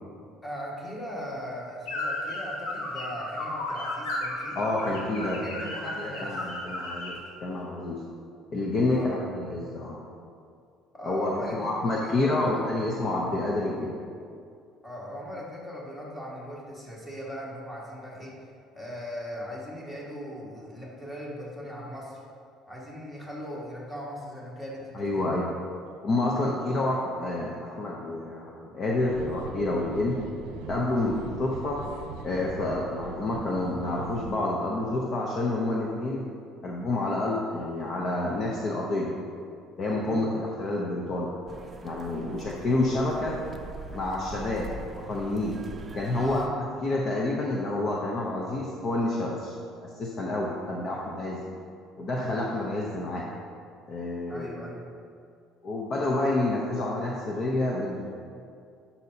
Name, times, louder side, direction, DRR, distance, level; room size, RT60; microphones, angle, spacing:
voice 1, 0.4-4.6 5.4-6.5 8.9-9.3 10.9-12.8 14.8-18.4 18.7-22.2 22.7-25.4 26.3-26.8 29.1-29.3 40.0-40.3 46.2-46.5 54.3-54.8, equal, 15° left, -5 dB, 1.9 m, -39 dB
sound 1, 1.9-7.2, left 1 dB, 85° left, 1.5 m, -34 dB
voice 2, 4.5-8.0 8.5-10.0 11.0-14.0 24.9-25.5 26.0-30.2 30.7-31.8 32.2-36.3 36.6-39.1 39.8-41.3 41.8-43.4 43.9-45.6 45.9-49.6 49.8-51.4 52.0-53.3 53.9-54.5 55.6-58.2, left 2 dB, 40° left, -2 dB, 0.8 m, -29 dB
sound 2, 29.1-34.3, right 4 dB, 85° right, 0.6 m, -41 dB
sound 3, 41.5-46.5, right 3 dB, 25° right, 0.6 m, -42 dB
10.5 x 5.6 x 2.8 m, 2.4 s
cardioid pair, 120°, 0 cm